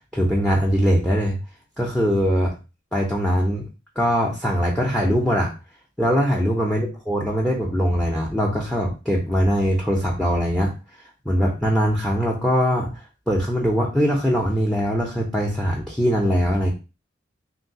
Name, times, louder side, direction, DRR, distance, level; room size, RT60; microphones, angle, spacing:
voice 1, 0.1-1.4 1.8-2.5 2.9-3.6 4.0-5.5 6.0-10.7 11.3-12.9 13.3-16.7, equal, 5° left, -2 dB, 0.5 m, -21 dB
3.0 x 2.7 x 2.7 m, 0.30 s
head